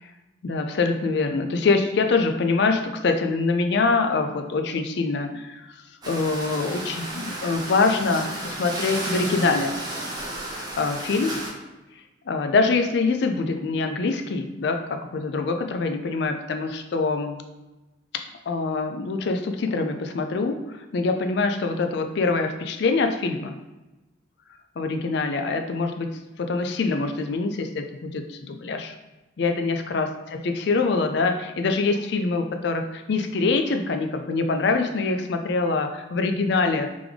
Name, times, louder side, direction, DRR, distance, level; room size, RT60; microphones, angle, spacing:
voice 1, 0.4-5.6 6.1-9.7 10.8-11.4 12.3-17.4 18.1-23.5 24.8-28.9 29.4-36.9, left 3 dB, 55° left, 6 dB, 0.4 m, -24 dB
sound 1, 6.0-11.5, right 1 dB, 20° right, 0.7 m, -33 dB
3.4 x 3.3 x 3.4 m, 1.1 s
head